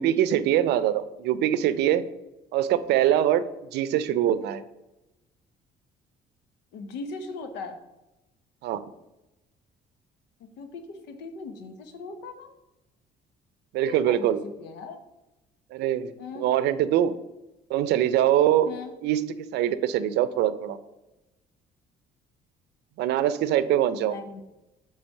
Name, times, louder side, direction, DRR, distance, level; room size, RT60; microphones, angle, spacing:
voice 1, 0.0-2.0 2.5-3.4 3.7-4.6 8.6-8.8 13.7-14.4 15.7-17.1 17.7-18.7 19.0-20.8 23.0-24.2, right 11 dB, 80° right, 14 dB, 0.5 m, -23 dB
voice 2, 6.7-7.8 10.4-12.6 13.8-15.0 16.2-16.5 18.7-18.9 24.0-24.4, left 4 dB, 90° left, 7 dB, 1.0 m, -39 dB
8.0 x 3.4 x 5.4 m, 0.97 s
cardioid pair, 110°, 17 cm